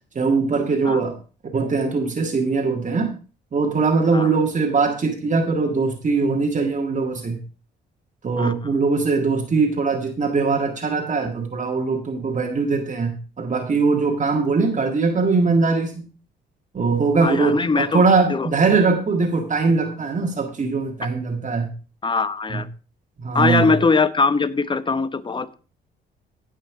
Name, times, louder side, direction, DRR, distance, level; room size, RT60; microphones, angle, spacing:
voice 1, 0.2-1.2 1.5-3.1 3.5-7.4 8.2-16.0 16.7-21.7 22.5-22.6 23.2-23.7, right 4 dB, 40° right, 3 dB, 1.8 m, -21 dB
voice 2, 17.2-18.0 18.3-18.5 22.0-22.7 23.3-25.5, left 4 dB, 25° left, 13 dB, 1.0 m, -21 dB
16.0 x 5.7 x 4.9 m, 0.36 s
cardioid pair, 90°, 20 cm